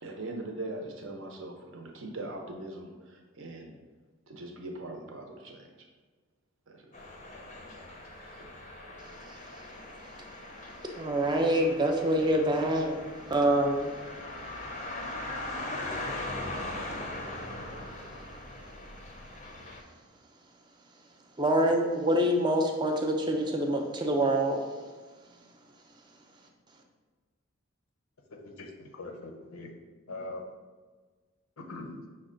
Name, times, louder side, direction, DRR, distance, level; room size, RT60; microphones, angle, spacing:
voice 1, 0.0-3.8 4.3-5.7 6.7-6.9 8.1-8.5, right 2 dB, 60° right, 2 dB, 0.7 m, -41 dB
sound 1, 6.9-19.8, left 2 dB, 35° left, 0.5 m, -40 dB
voice 2, 11.0-13.0 13.3-13.9 21.4-24.6, right 1 dB, 20° right, 2 dB, 0.4 m, -26 dB
voice 3, 28.3-29.7 30.1-30.5 31.6-32.1, left 2 dB, 85° left, 3 dB, 0.6 m, -42 dB
5.8 x 2.2 x 3.7 m, 1.4 s
head